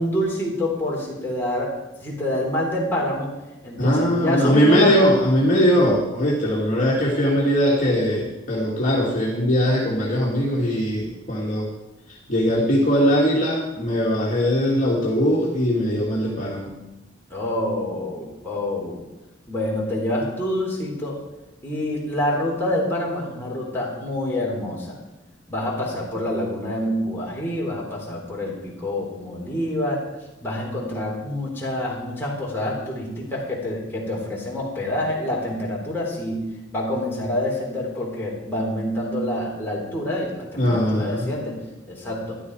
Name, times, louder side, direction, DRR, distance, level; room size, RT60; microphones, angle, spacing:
voice 1, 0.0-1.7 2.0-3.3 3.6-5.0 17.3-19.0 19.5-21.2 21.6-25.0 25.5-30.0 30.4-36.4 36.7-41.6 41.9-42.4, left 1 dB, 10° left, -4 dB, 3.7 m, -27 dB
voice 2, 3.8-11.7 12.3-16.8 40.6-41.3, equal, 40° left, -5 dB, 2.6 m, -20 dB
14.5 x 12.0 x 4.9 m, 1.0 s
head